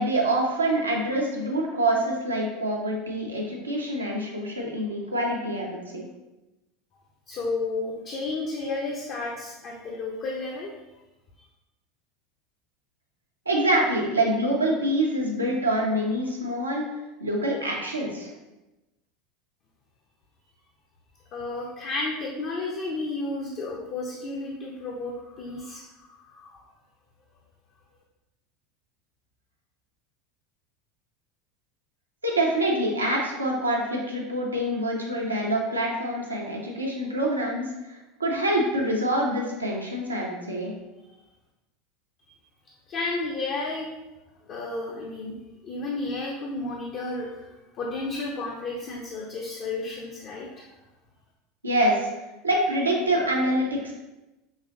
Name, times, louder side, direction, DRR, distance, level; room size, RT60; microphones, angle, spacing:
voice 1, 0.0-6.0 13.5-16.8 17.2-18.3 32.2-40.7 51.6-52.1 52.4-53.9, right 1 dB, 85° right, -2 dB, 0.8 m, -26 dB
voice 2, 7.3-10.7 21.3-26.6 42.9-43.9 44.4-45.4 45.6-50.7, left 3 dB, 40° left, -2 dB, 0.7 m, -32 dB
6.1 x 3.1 x 2.7 m, 1.0 s
figure-of-eight pair, 75°, 0 cm